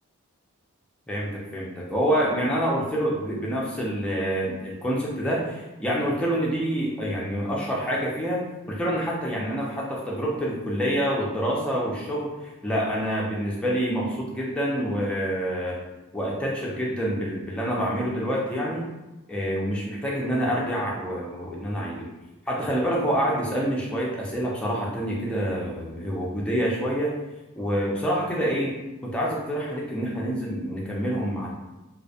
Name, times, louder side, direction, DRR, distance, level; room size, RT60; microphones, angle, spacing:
voice 1, 1.1-15.8 16.1-18.8 19.3-22.1 22.5-27.1 27.6-28.8 29.0-31.5, equal, 5° left, -4 dB, 0.3 m, -27 dB
2.4 x 2.0 x 2.7 m, 1.0 s
head